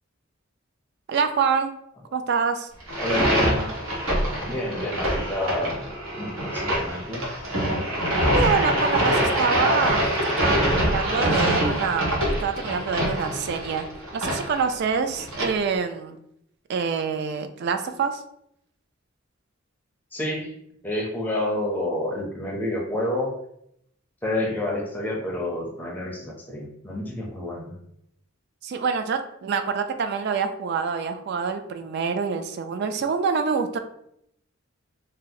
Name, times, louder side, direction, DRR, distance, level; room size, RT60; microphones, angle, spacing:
voice 1, 1.1-1.7 2.1-2.7 8.3-13.9 14.1-16.2 16.7-18.2 28.6-33.8, right 5 dB, 55° right, 8 dB, 0.3 m, -26 dB
sound 1, 2.8-15.5, equal, 80° right, 1.1 m, -24 dB
voice 2, 3.0-3.8 4.5-5.8 6.2-7.3 20.1-20.5 20.8-23.3 24.2-27.7, left 1 dB, 10° left, -1 dB, 0.5 m, -29 dB
2.7 x 2.0 x 3.9 m, 0.74 s
head